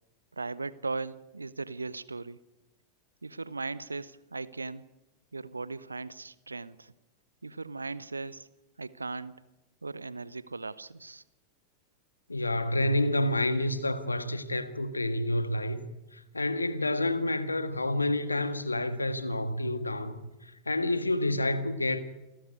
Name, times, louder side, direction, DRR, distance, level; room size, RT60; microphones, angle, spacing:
voice 1, 0.3-2.4 3.2-4.9 5.3-6.9 7.4-8.5 8.8-9.3 9.8-11.2, right 3 dB, 80° right, 0.8 m, -38 dB
voice 2, 12.3-15.8 16.1-22.0, left 1 dB, 80° left, 1.6 m, -29 dB
28.5 x 13.0 x 9.5 m
figure-of-eight pair, 90°, 0 cm